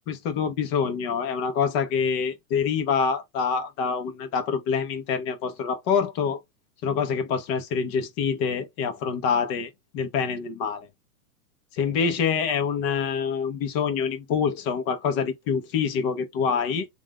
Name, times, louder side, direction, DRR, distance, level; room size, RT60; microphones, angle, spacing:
voice 1, 0.0-6.4 6.8-10.9 11.7-16.9, left 6 dB, 30° left, 0.9 m, -26 dB
3.5 x 2.5 x 3.0 m
hypercardioid pair, 140°, 46 cm